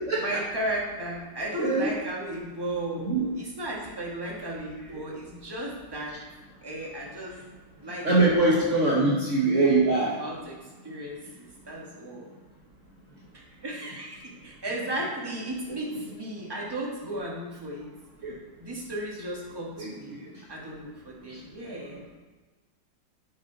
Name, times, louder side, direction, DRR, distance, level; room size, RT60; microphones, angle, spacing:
voice 1, 0.2-6.2 6.6-7.4 7.8-8.1 8.6-8.7 9.0-9.1 10.0-12.3 13.3-17.9 18.6-20.2 20.5-22.1, right 1 dB, 15° right, -3 dB, 1.7 m, -35 dB
voice 2, 1.6-1.9 3.1-3.2 8.0-10.1 18.2-18.3 19.8-20.2 21.3-21.4, right 2 dB, 45° right, -5 dB, 1.5 m, -23 dB
9.4 x 6.2 x 4.0 m, 1.3 s
omnidirectional pair, 2.0 m